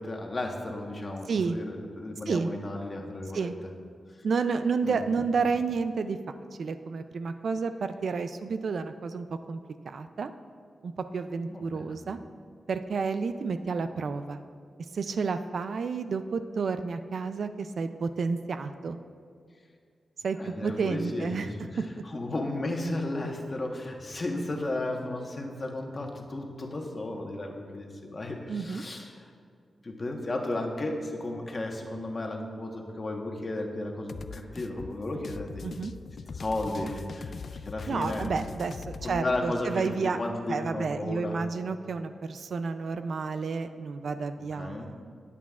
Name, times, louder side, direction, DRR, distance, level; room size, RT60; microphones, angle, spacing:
voice 1, 0.0-3.7 4.1-4.2 4.8-5.3 11.5-12.0 20.4-21.6 22.0-29.3 29.8-35.6 36.3-38.3 39.0-41.4 44.4-44.9, left 2 dB, 30° left, 1 dB, 1.1 m, -34 dB
voice 2, 4.2-9.6 9.8-10.3 10.8-12.2 12.7-14.4 14.9-19.0 20.2-21.5 21.8-21.9 28.5-28.9 35.6-35.9 37.9-40.2 40.5-45.0, right 5 dB, 65° right, 9 dB, 0.4 m, -31 dB
sound 1, 34.1-39.2, left 5 dB, 55° left, 0.3 m, -41 dB
20.5 x 8.4 x 2.4 m, 2.2 s
wide cardioid pair, 150°, 0 cm